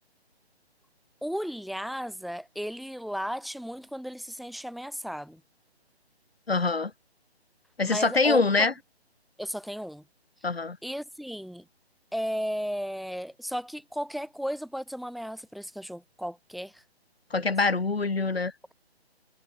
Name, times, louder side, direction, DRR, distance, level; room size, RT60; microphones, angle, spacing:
voice 1, 1.2-5.4 7.8-8.7 9.4-10.0 10.8-11.6 12.1-16.8 17.4-17.5, equal, ahead, 1.2 m, -34 dB
voice 2, 6.5-6.9 7.8-8.7 10.4-10.8 17.3-18.5, left 3 dB, 65° left, 4.7 m, -24 dB
figure-of-eight pair, 140°, 32 cm